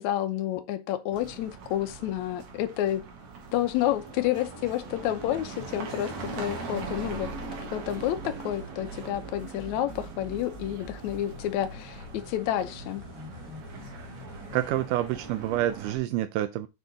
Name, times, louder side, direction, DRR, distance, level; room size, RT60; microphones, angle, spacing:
voice 1, 0.0-3.0 3.5-7.3 7.7-13.0, left 12 dB, 70° left, 1.9 m, -30 dB
sound 1, 1.1-16.0, right 4 dB, 60° right, 2.6 m, -41 dB
sound 2, 7.8-14.7, left 2 dB, 55° left, 1.2 m, -45 dB
voice 2, 14.5-16.7, right 13 dB, 85° right, 2.1 m, -28 dB
7.6 x 4.6 x 4.0 m
omnidirectional pair, 3.8 m